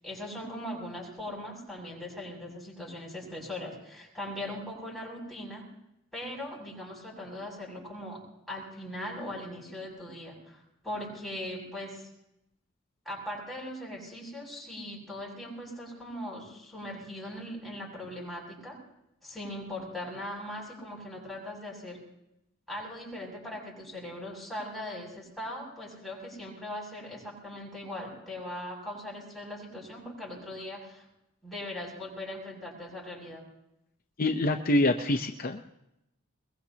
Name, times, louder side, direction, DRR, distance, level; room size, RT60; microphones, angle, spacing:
voice 1, 0.0-5.7 6.1-12.1 13.1-18.8 19.2-22.0 22.7-31.0 31.4-33.5, left 1 dB, ahead, -3 dB, 7.2 m, -40 dB
voice 2, 34.2-35.7, left 1 dB, 45° left, 5 dB, 0.7 m, -26 dB
22.0 x 22.0 x 2.9 m, 0.85 s
head